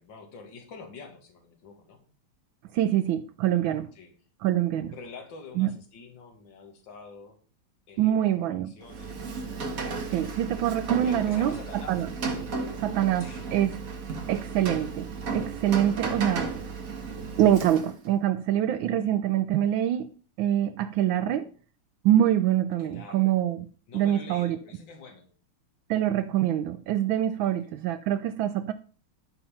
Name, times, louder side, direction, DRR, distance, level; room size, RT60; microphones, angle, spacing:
voice 1, 0.0-2.0 4.0-4.1 4.9-7.4 7.9-9.2 10.1-10.6 11.0-12.0 13.2-13.5 16.0-16.3 22.8-23.3 23.9-25.3 27.4-27.5, left 4 dB, 65° left, 2.5 m, -46 dB
voice 2, 2.7-3.9 4.4-4.9 5.6-5.8 8.0-8.7 10.1-12.1 12.8-13.8 14.3-16.5 17.4-21.5 22.0-23.7 23.9-24.6 25.9-28.7, right 11 dB, 75° right, 1.3 m, -25 dB
Rain, 8.8-18.1, right 4 dB, 45° right, 1.8 m, -34 dB
12.0 x 5.5 x 5.6 m
omnidirectional pair, 2.2 m